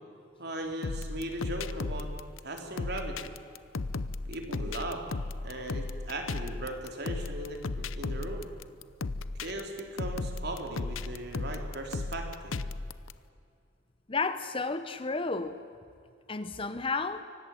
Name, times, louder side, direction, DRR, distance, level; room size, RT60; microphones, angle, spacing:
voice 1, 0.4-2.1 2.4-3.3 4.3-5.0 5.4-8.5 9.4-12.6, right 1 dB, 50° right, 3 dB, 3.5 m, -38 dB
sound 1, 0.8-13.1, left 3 dB, 75° left, 0.8 m, -35 dB
voice 2, 14.1-15.6 16.3-17.2, left 3 dB, 25° left, 11 dB, 0.8 m, -32 dB
24.5 x 18.0 x 9.1 m, 2.4 s
head